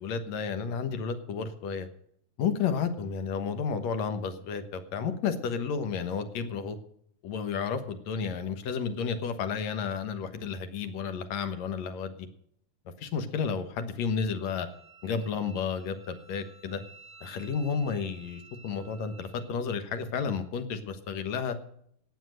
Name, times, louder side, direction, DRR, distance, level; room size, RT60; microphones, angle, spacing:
voice 1, 0.0-1.9 2.4-6.8 7.2-12.3 13.0-14.7 15.0-16.8 17.2-21.6, left 6 dB, 65° left, 9 dB, 2.4 m, -32 dB
Wind instrument woodwind instrument, 14.4-19.5, right 4 dB, 20° left, 5.5 m, -54 dB
17.5 x 7.1 x 6.4 m, 0.68 s
omnidirectional pair, 3.5 m